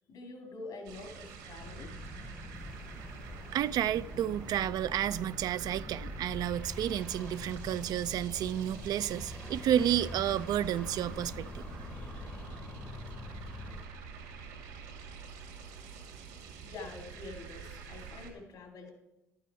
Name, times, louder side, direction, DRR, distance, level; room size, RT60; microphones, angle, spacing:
voice 1, 0.1-1.9 11.9-13.0 16.6-18.9, left 3 dB, 65° left, 2.3 m, -47 dB
sound 1, 0.9-18.3, right 5 dB, 85° right, 1.9 m, -47 dB
sound 2, 1.6-13.9, left 2 dB, 15° left, 0.8 m, -44 dB
voice 2, 3.5-11.9, right 11 dB, 60° right, 0.4 m, -31 dB
11.5 x 8.5 x 4.7 m
hypercardioid pair, 55°, 7 cm